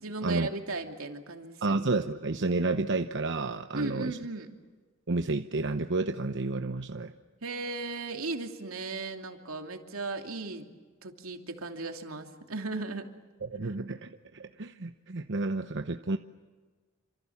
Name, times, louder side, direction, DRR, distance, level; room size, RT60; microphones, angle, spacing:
voice 1, 0.0-1.8 3.7-4.5 7.4-10.7 11.0-13.1 13.6-13.7, right 3 dB, 85° right, 4 dB, 2.7 m, -36 dB
voice 2, 1.6-4.2 5.1-7.1 13.4-16.2, right 3 dB, 60° right, 7 dB, 0.9 m, -30 dB
28.5 x 26.5 x 7.2 m, 1.4 s
head